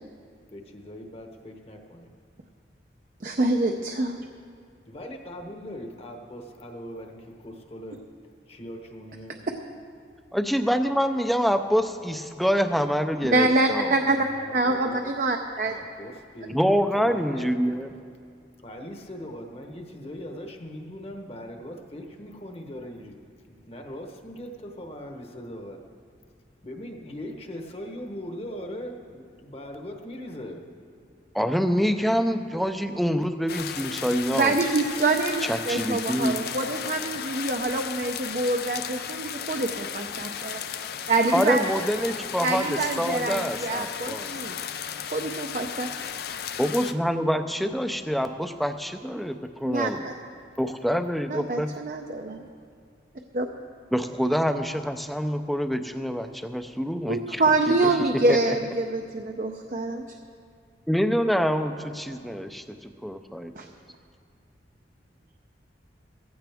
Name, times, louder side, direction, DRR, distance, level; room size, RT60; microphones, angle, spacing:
voice 1, 0.5-2.1 4.9-9.4 14.1-15.1 15.6-17.5 18.6-23.2 23.5-25.8 26.6-30.6, equal, 30° left, 3 dB, 1.1 m, -40 dB
voice 2, 3.2-4.2 13.3-14.3 14.5-15.7 34.3-40.6 41.1-41.6 42.4-44.6 45.1-45.9 49.6-50.1 51.3-52.5 53.3-53.5 57.1-60.1 63.6-63.7, right 2 dB, 45° right, 3 dB, 0.6 m, -25 dB
voice 3, 10.3-14.0 16.5-17.9 31.3-34.5 35.5-36.3 41.3-44.3 46.6-50.0 50.6-51.7 53.9-57.4 58.3-58.5 60.9-63.5, equal, ahead, 8 dB, 0.5 m, -26 dB
sound 1, 33.5-46.9, left 8 dB, 55° left, 0.5 m, -35 dB
15.5 x 15.0 x 3.5 m, 2.3 s
head